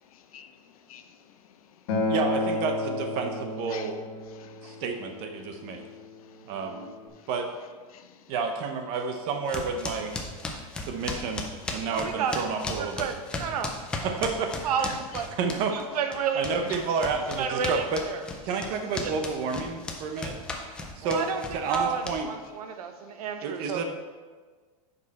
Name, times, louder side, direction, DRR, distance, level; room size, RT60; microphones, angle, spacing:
voice 1, 0.9-2.1 3.7-4.8 5.4-7.3 7.9-8.3 10.5-10.9 11.8-12.0 12.7-12.8 14.9-15.2 16.6-16.7 18.5-18.7 19.9-21.1 22.7-23.3, left 9 dB, 75° left, 8 dB, 0.8 m, -51 dB
Acoustic guitar, 1.9-7.1, left 2 dB, 50° left, 1.7 m, -32 dB
voice 2, 2.1-4.0 4.6-5.8 6.5-6.9 7.3-7.5 8.3-10.1 10.8-11.5 11.7-13.1 14.0-14.5 14.8-14.9 15.3-15.8 16.4-18.0 18.4-20.4 21.0-22.3 23.4-23.8, right 5 dB, 30° right, 5 dB, 0.7 m, -30 dB
sound 1, 9.5-15.8 16.1-22.5, left 2 dB, 5° left, 0.3 m, -36 dB
voice 3, 11.9-12.5 12.7-13.7 14.6-15.3 15.7-16.7 17.1-18.2 19.0-19.1 21.0-23.8, right 6 dB, 85° right, 7 dB, 0.9 m, -31 dB
9.7 x 5.4 x 4.1 m, 1.5 s
supercardioid pair, 180°, 19 cm